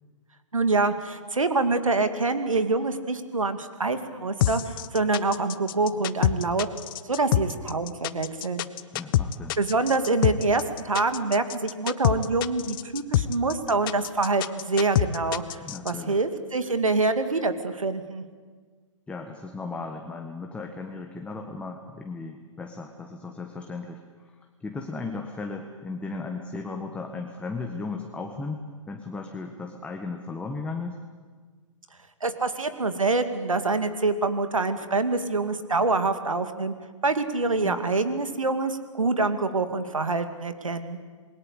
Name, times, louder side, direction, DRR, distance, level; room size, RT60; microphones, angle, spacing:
voice 1, 0.5-8.6 9.6-18.2 32.2-36.7 37.0-41.0, right 3 dB, 80° right, 9 dB, 2.4 m, -26 dB
sound 1, 4.4-15.9, left 13 dB, 40° left, 1.0 m, -26 dB
voice 2, 8.9-9.6 15.6-16.2 19.1-24.0 24.6-31.0 37.6-37.8, left 3 dB, 5° left, 3 dB, 1.6 m, -36 dB
28.0 x 21.5 x 8.3 m, 1.5 s
figure-of-eight pair, 125°, 17 cm